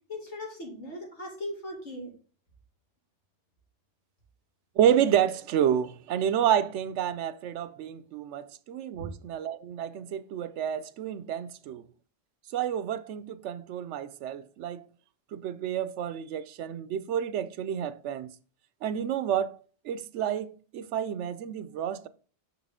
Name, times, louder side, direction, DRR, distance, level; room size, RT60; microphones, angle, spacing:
voice 1, 0.1-2.1 9.0-9.1, left 1 dB, 85° left, 2.6 m, -38 dB
voice 2, 4.8-11.9 12.5-14.9 15.3-18.4 18.8-19.6 19.8-22.1, right 9 dB, 85° right, 0.9 m, -29 dB
6.4 x 6.0 x 3.5 m
omnidirectional pair, 1.2 m